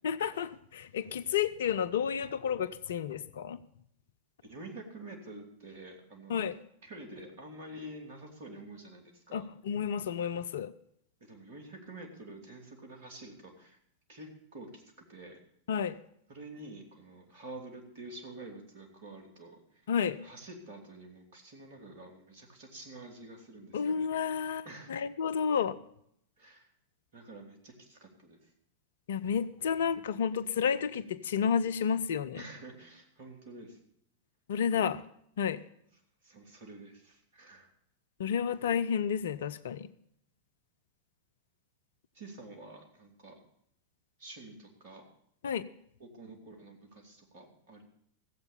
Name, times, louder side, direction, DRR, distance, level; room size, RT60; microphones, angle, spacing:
voice 1, 0.0-3.6 6.3-6.5 9.3-10.7 15.7-16.0 19.9-20.2 23.7-25.8 29.1-32.4 34.5-35.0 35.4-35.6 38.2-39.9 45.4-45.6, left 7 dB, 60° left, 15 dB, 0.5 m, -31 dB
voice 2, 4.4-6.5 6.8-9.5 11.2-13.8 14.1-15.4 16.3-19.8 20.2-24.0 24.4-24.9 26.4-26.7 27.1-28.5 32.3-33.8 34.5-34.6 36.2-37.7 42.1-43.4 44.2-45.0 46.0-47.8, right 2 dB, 55° right, 3 dB, 2.7 m, -48 dB
15.0 x 8.0 x 6.9 m, 0.70 s
figure-of-eight pair, 90°, 0 cm